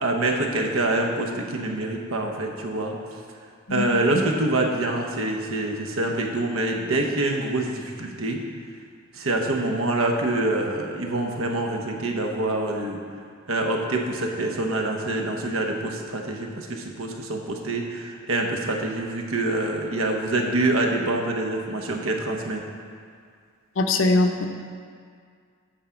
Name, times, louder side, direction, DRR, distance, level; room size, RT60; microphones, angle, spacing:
voice 1, 0.0-2.9 3.7-8.4 9.1-13.0 13.5-22.6, right 2 dB, 70° right, 2 dB, 1.0 m, -26 dB
voice 2, 23.8-24.5, left 2 dB, 60° left, 5 dB, 0.7 m, -21 dB
10.0 x 3.8 x 7.0 m, 2.1 s
head